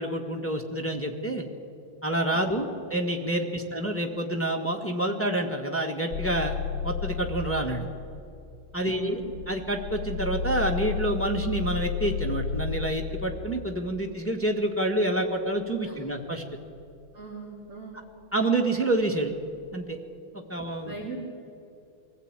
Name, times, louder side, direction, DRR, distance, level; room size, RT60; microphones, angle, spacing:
voice 1, 0.0-1.5 2.0-6.6 6.8-7.9 8.7-9.2 9.5-16.4 18.3-19.3 19.7-20.0 20.3-20.9, right 1 dB, 5° left, 2 dB, 1.4 m, -28 dB
voice 2, 2.3-2.7 8.8-9.2 15.8-16.1 17.1-18.0 20.8-21.2, right 4 dB, 40° right, -6 dB, 4.6 m, -40 dB
sound 1, 6.1-8.2 9.1-14.0 16.8-16.9, left 5 dB, 55° left, 2.0 m, -32 dB
23.0 x 15.5 x 9.0 m, 2.6 s
omnidirectional pair, 2.2 m